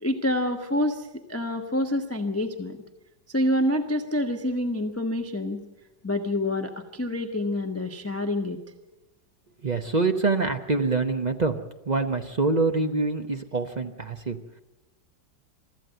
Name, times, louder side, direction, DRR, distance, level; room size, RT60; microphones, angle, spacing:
voice 1, 0.0-2.8 3.3-5.6 6.0-8.6, left 1 dB, 10° left, 5 dB, 0.9 m, -27 dB
voice 2, 9.6-11.6 11.8-14.4, right 3 dB, 45° right, 6 dB, 0.5 m, -25 dB
24.0 x 14.0 x 7.8 m, 1.0 s
omnidirectional pair, 2.1 m